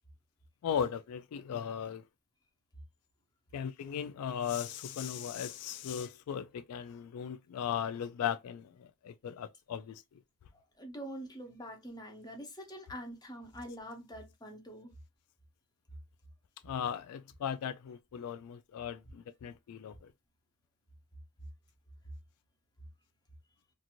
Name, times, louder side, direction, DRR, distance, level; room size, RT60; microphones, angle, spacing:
voice 1, 0.6-2.0 3.5-10.2 16.6-20.1, left 8 dB, 85° left, 0.3 m, -37 dB
voice 2, 10.8-14.9, equal, 20° left, 0.8 m, -45 dB
2.6 x 2.5 x 2.9 m
head